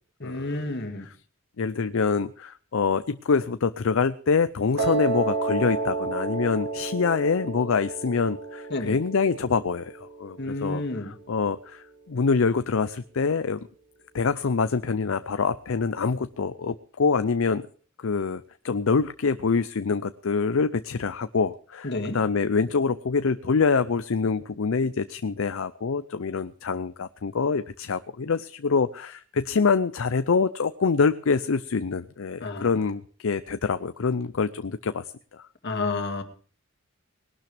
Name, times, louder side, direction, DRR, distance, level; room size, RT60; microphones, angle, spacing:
voice 1, 0.2-1.1 8.7-9.0 10.4-11.1 21.8-22.2 32.4-32.7 35.6-36.2, left 2 dB, 55° left, 5 dB, 2.3 m, -30 dB
voice 2, 1.6-13.7 14.1-17.6 18.0-35.0 35.3-35.4, left 5 dB, 70° left, 12 dB, 0.5 m, -25 dB
Piano, 4.8-10.9, right 4 dB, 65° right, 3.5 m, -31 dB
20.0 x 12.0 x 3.4 m, 0.43 s
head